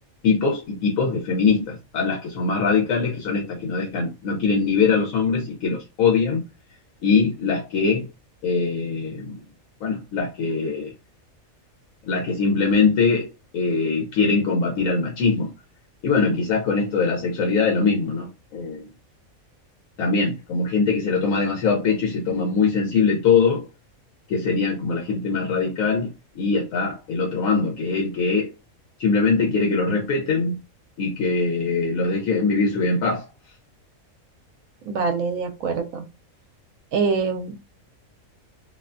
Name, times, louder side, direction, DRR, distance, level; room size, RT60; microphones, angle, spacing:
voice 1, 0.2-6.4 7.0-8.1 8.4-9.4 9.8-10.9 12.1-13.3 13.5-15.5 16.0-18.8 20.0-23.7 24.3-26.1 26.4-28.5 29.0-30.6 31.0-33.3, left 4 dB, 80° left, 1.0 m, -22 dB
voice 2, 34.9-36.0 36.9-37.6, right 4 dB, 75° right, 1.0 m, -24 dB
2.6 x 2.2 x 2.4 m
omnidirectional pair, 1.4 m